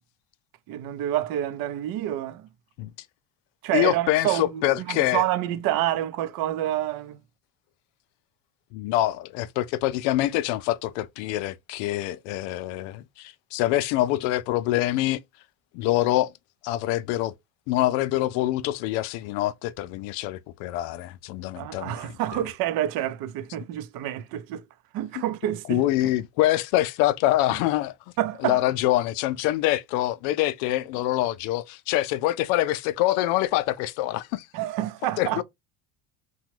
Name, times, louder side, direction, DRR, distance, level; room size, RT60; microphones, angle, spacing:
voice 1, 0.7-2.5 3.6-7.2 21.6-24.6 24.9-25.8 28.2-28.6 34.5-35.4, right 13 dB, 50° right, 0.5 m, -28 dB
voice 2, 3.7-5.2 8.7-15.2 15.7-16.3 16.6-17.3 17.7-22.1 25.7-27.9 28.4-34.5 35.2-35.4, left 15 dB, 70° left, 0.5 m, -25 dB
2.9 x 2.3 x 3.0 m
supercardioid pair, 120°, 46 cm